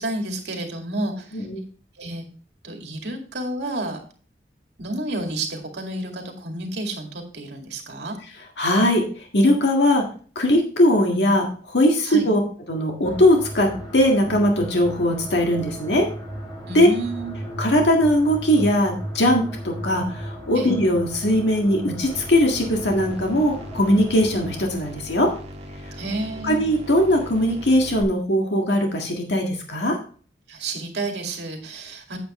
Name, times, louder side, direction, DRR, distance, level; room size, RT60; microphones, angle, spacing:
voice 1, 0.0-1.5 2.0-2.2 2.6-4.0 4.8-8.2 12.0-12.3 16.7-17.3 20.6-20.8 26.0-26.6 30.5-32.2, right 2 dB, 70° right, 2 dB, 2.2 m, -30 dB
voice 2, 8.6-9.1 9.3-10.0 10.4-12.4 12.7-16.1 16.7-16.9 17.6-25.3 26.4-30.0, equal, 75° left, 1 dB, 1.7 m, -20 dB
sound 1, 13.0-24.6, equal, 30° left, 3.9 m, -36 dB
sound 2, 22.0-28.0, equal, 40° right, 1.7 m, -39 dB
8.9 x 8.4 x 3.1 m, 0.42 s
head